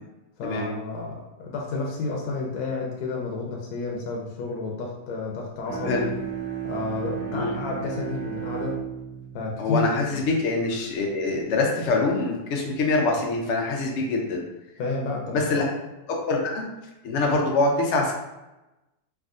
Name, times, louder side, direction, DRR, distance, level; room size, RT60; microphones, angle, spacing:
voice 1, 0.4-6.1 6.6-8.8 9.3-9.9 14.8-15.7, left 3 dB, 75° left, -1 dB, 1.0 m, -31 dB
Bowed string instrument, 5.6-11.1, right 9 dB, 65° right, 1.2 m, -35 dB
voice 2, 9.6-14.4 15.3-15.6 16.3-16.7 17.0-18.1, left 3 dB, 90° left, 0 dB, 0.6 m, -24 dB
3.5 x 2.4 x 2.4 m, 1.0 s
omnidirectional pair, 1.8 m